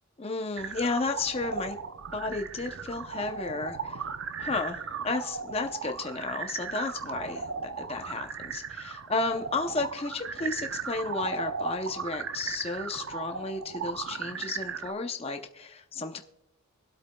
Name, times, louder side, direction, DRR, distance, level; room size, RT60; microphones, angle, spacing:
voice 1, 0.2-1.8 2.1-4.1 4.4-16.2, left 3 dB, 25° left, 5 dB, 0.6 m, -33 dB
sound 1, 0.6-14.9, right 5 dB, 65° right, 0.6 m, -37 dB
24.0 x 8.2 x 2.2 m, 0.87 s
head